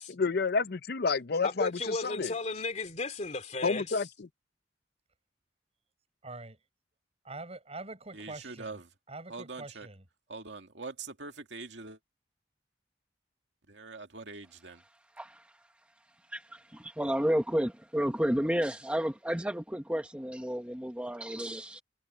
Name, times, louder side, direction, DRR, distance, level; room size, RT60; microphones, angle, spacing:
voice 1, 0.2-2.3 3.6-4.3, left 4 dB, 60° left, 0.7 m, -29 dB
voice 2, 1.4-4.0, left 3 dB, 40° left, 2.6 m, -35 dB
voice 3, 6.2-6.6 7.2-8.8 9.1-10.0, right 2 dB, 35° right, 7.9 m, -44 dB
voice 4, 8.1-8.9 9.3-9.9 10.3-12.0 13.7-14.8, right 3 dB, 80° right, 2.2 m, -43 dB
voice 5, 16.3-21.8, equal, 5° right, 1.2 m, -31 dB
head